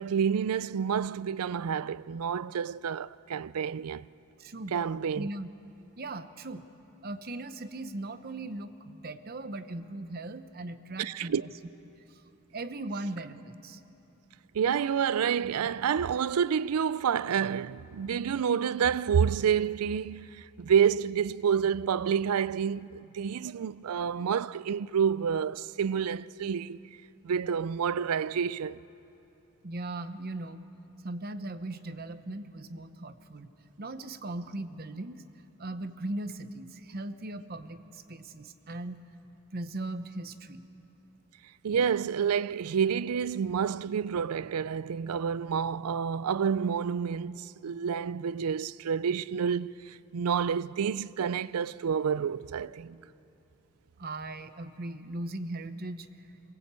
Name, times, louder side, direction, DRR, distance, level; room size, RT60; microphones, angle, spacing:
voice 1, 0.0-4.1 4.7-5.3 11.0-11.4 14.5-26.8 27.2-28.8 41.6-53.0, right 7 dB, 85° right, 0.4 m, -29 dB
voice 2, 4.4-4.8 5.2-5.5 6.0-6.6 7.0-11.5 12.1-12.2 12.5-13.8 29.6-30.6 31.0-33.5 33.8-35.2 35.6-39.0 39.5-40.6 54.0-56.1, right 2 dB, 40° right, 0.8 m, -38 dB
22.5 x 19.0 x 8.2 m
head